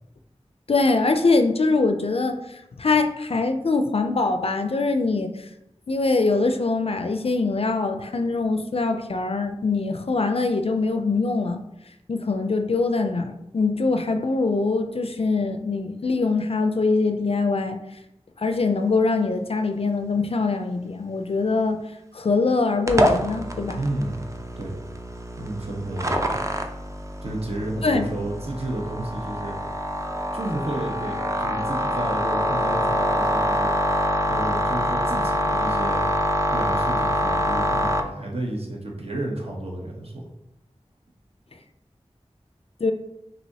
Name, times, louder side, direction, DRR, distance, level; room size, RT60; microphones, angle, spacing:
voice 1, 0.7-5.3 5.9-11.6 12.1-17.8 18.4-21.8 22.1-23.8 27.8-28.1 42.8-42.9, left 3 dB, 60° left, 7 dB, 0.4 m, -23 dB
sound 1, 22.9-38.0, equal, 25° right, 0.5 m, -25 dB
voice 2, 23.8-24.3 24.6-24.8 25.4-26.5 27.2-29.6 30.3-33.7 34.2-36.1 36.5-40.3, right 1 dB, 60° right, -1 dB, 1.0 m, -31 dB
6.1 x 2.8 x 2.8 m, 0.86 s
wide cardioid pair, 55°, 12 cm